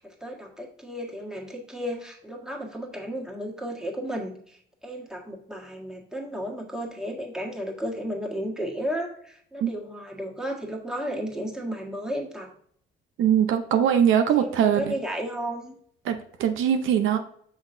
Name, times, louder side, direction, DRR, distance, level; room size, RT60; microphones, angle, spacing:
voice 1, 0.0-4.6 4.8-12.5 14.4-15.7 17.0-17.2, equal, 5° right, -1 dB, 1.5 m, -33 dB
voice 2, 13.2-14.9 16.1-17.2, right 9 dB, 80° right, 7 dB, 0.6 m, -22 dB
6.1 x 5.8 x 2.6 m, 0.62 s
cardioid pair, 90°, 20 cm